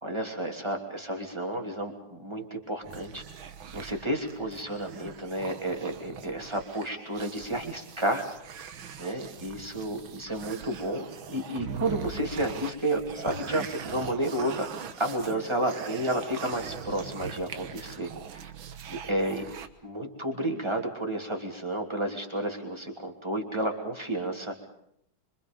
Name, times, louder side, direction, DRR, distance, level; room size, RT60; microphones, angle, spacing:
voice 1, 0.0-3.2 3.7-8.2 9.0-14.7 15.0-18.5 18.9-19.4 19.8-24.7, right 1 dB, 15° right, 3 dB, 2.9 m, -31 dB
sound 1, 2.8-19.7, right 7 dB, 80° right, 2.0 m, -42 dB
25.5 x 25.0 x 5.3 m, 0.73 s
omnidirectional pair, 2.2 m